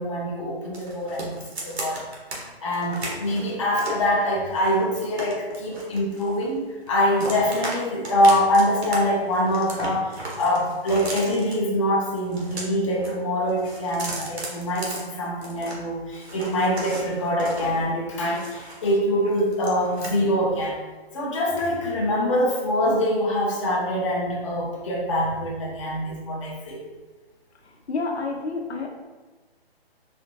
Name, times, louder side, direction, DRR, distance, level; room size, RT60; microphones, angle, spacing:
voice 1, 0.0-2.0 2.6-20.8 21.1-26.8, equal, 30° left, -4 dB, 0.6 m, -24 dB
sound 1, 0.7-2.4 2.7-4.1 4.6-6.6 6.9-7.8 8.0-9.0 9.2-11.5 12.2-13.1 13.4-15.8 16.1-19.0 19.3-20.1, right 2 dB, 75° right, 1.2 m, -35 dB
voice 2, 27.9-28.9, left 3 dB, 85° left, 1 dB, 0.8 m, -28 dB
4.2 x 2.6 x 2.7 m, 1.3 s
hypercardioid pair, 155°, 32 cm